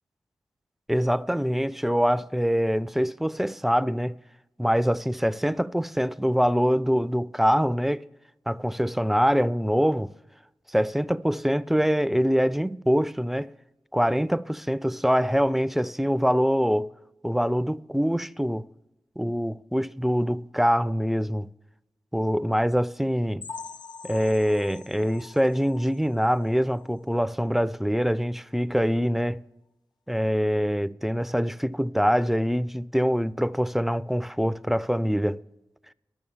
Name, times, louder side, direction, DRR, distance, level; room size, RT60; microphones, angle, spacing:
voice 1, 0.9-4.2 4.6-8.1 8.5-10.1 10.7-13.5 13.9-16.9 17.2-18.7 19.2-21.5 22.1-23.5 24.0-29.4 30.1-35.4, equal, 5° right, 0.3 m, -24 dB
sound 1, 23.4-27.0 27.4-27.6 27.9-28.0 28.5-28.6, left 5 dB, 70° left, 0.4 m, -44 dB
12.5 x 7.0 x 7.1 m
cardioid pair, 50°, 8 cm